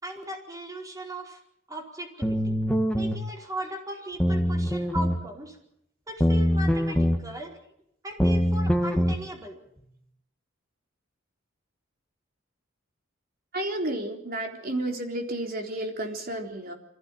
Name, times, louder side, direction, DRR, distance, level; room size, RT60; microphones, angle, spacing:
voice 1, 0.0-1.4 1.7-2.6 2.9-5.6 6.1-7.5 8.0-9.6, right 1 dB, 15° right, 2 dB, 4.6 m, -38 dB
sound 1, 2.2-3.2 4.2-5.2 6.2-7.2 8.2-9.2, equal, 5° left, 1.8 m, -23 dB
voice 2, 13.5-16.7, right 1 dB, 45° right, 3 dB, 3.8 m, -31 dB
25.0 x 16.0 x 9.0 m, 0.74 s
head